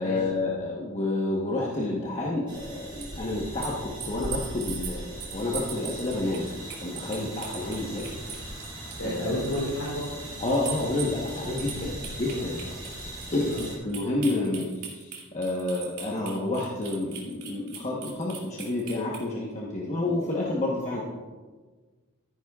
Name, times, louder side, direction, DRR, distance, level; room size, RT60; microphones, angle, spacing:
voice 1, 0.0-6.5 6.8-8.1 8.3-9.3 10.4-12.6 13.0-21.0, left 2 dB, 30° left, -4 dB, 1.1 m, -30 dB
sound 1, 2.5-13.8, right 1 dB, 20° right, 3.1 m, -39 dB
sound 2, 3.0-3.1 3.6-9.1 9.4-9.7 10.0-10.1 10.4-19.2, right 7 dB, 85° right, 2.8 m, -39 dB
voice 2, 8.9-10.0 11.8-12.9 13.5-13.7, equal, 80° left, -6 dB, 3.3 m, -33 dB
14.0 x 10.0 x 2.4 m, 1.4 s
head